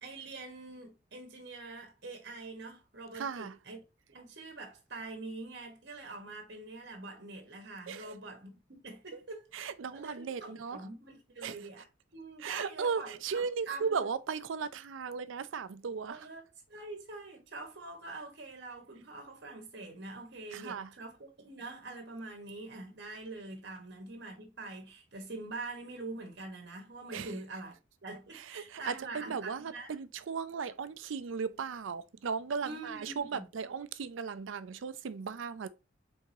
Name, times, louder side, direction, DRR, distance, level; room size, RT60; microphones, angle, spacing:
voice 1, 0.0-9.5 9.9-11.8 12.1-14.0 16.1-27.8 28.0-29.9 32.6-33.5, right 2 dB, 60° right, 1.2 m, -45 dB
voice 2, 3.1-3.6 7.9-8.1 9.1-9.2 9.5-10.8 11.4-11.6 12.4-16.3 20.5-20.9 27.1-27.3 28.3-35.7, right 5 dB, 75° right, 0.4 m, -36 dB
4.7 x 3.5 x 2.7 m
head